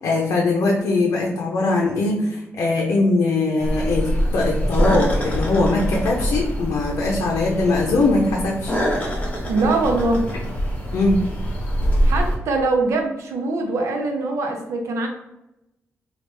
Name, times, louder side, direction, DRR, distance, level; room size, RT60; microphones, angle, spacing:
voice 1, 0.0-8.7 10.9-11.2, left 2 dB, 80° left, -1 dB, 0.5 m, -21 dB
sound 1, 3.6-12.4, equal, 30° left, 0.9 m, -24 dB
voice 2, 9.5-10.3 12.0-15.1, right 3 dB, 85° right, 3 dB, 0.6 m, -22 dB
3.2 x 2.3 x 3.3 m, 0.91 s
cardioid pair, 110°, 5 cm